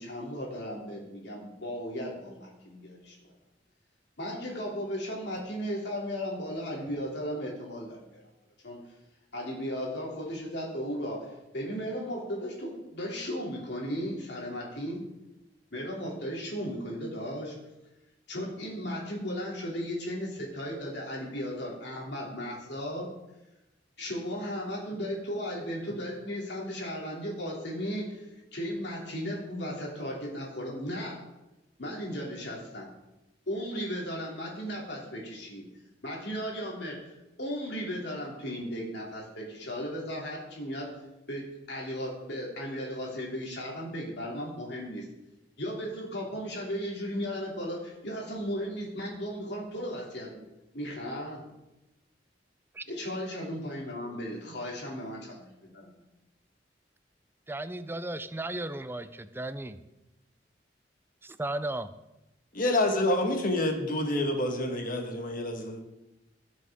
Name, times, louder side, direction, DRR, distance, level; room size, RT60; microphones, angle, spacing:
voice 1, 0.0-3.3 4.2-8.2 8.6-8.8 9.3-15.1 15.7-17.5 18.3-23.1 24.0-31.2 31.8-32.9 33.5-35.6 36.0-37.0 37.4-40.9 41.3-45.0 45.6-50.4 50.7-51.5 52.9-55.9, equal, 70° left, -2 dB, 2.9 m, -36 dB
voice 2, 57.5-59.8 61.4-61.9, right 2 dB, 15° right, 12 dB, 0.5 m, -35 dB
voice 3, 62.5-65.8, left 1 dB, 50° left, 4 dB, 1.5 m, -28 dB
17.5 x 6.5 x 3.6 m, 0.96 s
head